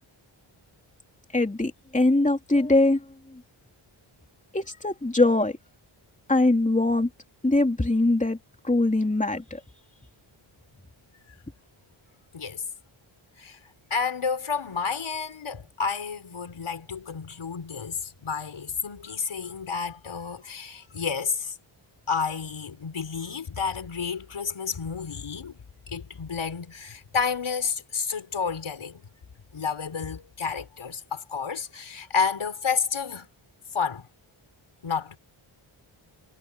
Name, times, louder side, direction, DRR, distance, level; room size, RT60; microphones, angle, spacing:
voice 1, 1.3-3.0 4.5-5.6 6.3-7.1 7.4-8.4 8.6-9.6, left 2 dB, 15° left, 2.9 m, -22 dB
voice 2, 13.9-21.5 22.1-25.6 25.9-29.0 29.5-33.3 33.7-34.1 34.8-35.2, left 5 dB, 75° left, 5.5 m, -30 dB
wide cardioid pair, 100°, 49 cm